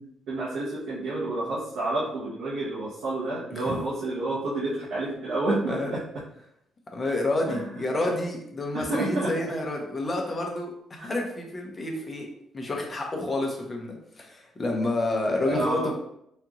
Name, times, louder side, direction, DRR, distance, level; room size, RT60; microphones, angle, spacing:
voice 1, 0.0-6.0 7.5-7.7 8.7-9.3 11.0-11.1 15.5-15.9, right 2 dB, 85° right, -8 dB, 0.9 m, -29 dB
voice 2, 6.9-12.3 12.5-15.9, left 2 dB, 30° left, 1 dB, 0.9 m, -29 dB
4.2 x 2.4 x 3.0 m, 0.77 s
cardioid pair, 90°, 0 cm